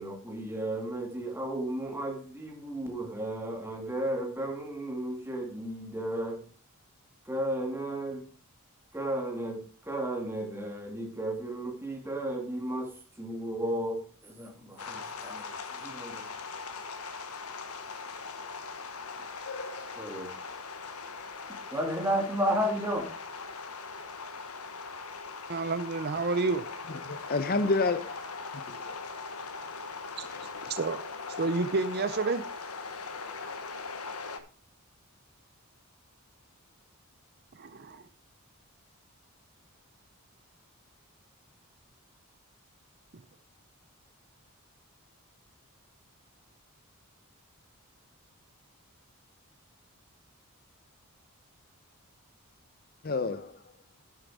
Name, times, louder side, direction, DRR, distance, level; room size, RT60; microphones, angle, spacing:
voice 1, 0.0-6.4 7.2-8.2 8.9-16.5 17.9-18.0 20.0-20.3 21.7-23.1, right 1 dB, 10° right, 2.3 m, -33 dB
sound 1, 14.8-34.4, left 4 dB, 90° left, 1.2 m, -40 dB
voice 2, 25.5-26.6 30.2-31.0 31.3-32.4 37.5-38.0, right 3 dB, 45° right, 0.6 m, -30 dB
voice 3, 27.0-28.2 28.5-28.9 30.3-30.4 53.0-53.5, left 3 dB, 45° left, 0.7 m, -29 dB
10.5 x 7.5 x 4.9 m
head